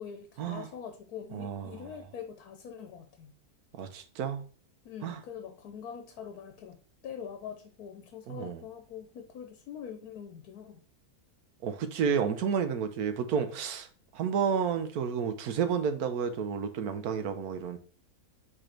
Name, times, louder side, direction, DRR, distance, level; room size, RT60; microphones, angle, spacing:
voice 1, 0.0-3.3 4.8-6.8 7.0-10.8, left 8 dB, 80° left, 1.3 m, -44 dB
voice 2, 1.3-1.8 3.8-4.4 5.0-5.2 8.3-8.6 11.6-13.9 14.1-17.8, right 7 dB, 80° right, 1.3 m, -31 dB
5.0 x 4.3 x 4.3 m
omnidirectional pair, 1.6 m